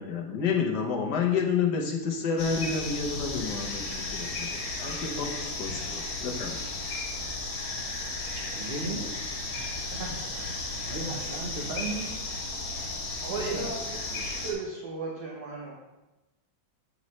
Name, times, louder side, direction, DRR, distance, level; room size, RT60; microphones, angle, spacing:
voice 1, 0.0-6.6, left 5 dB, 60° left, 0 dB, 1.3 m, -30 dB
sound 1, 2.4-14.5, left 2 dB, 80° left, 2.0 m, -34 dB
voice 2, 8.3-9.1 9.9-10.5 10.9-12.1 13.3-13.6, right 3 dB, 45° right, 0 dB, 0.8 m, -36 dB
voice 3, 13.2-15.8, right 3 dB, 60° right, -3 dB, 1.2 m, -36 dB
7.5 x 5.3 x 3.1 m, 1.1 s
omnidirectional pair, 2.2 m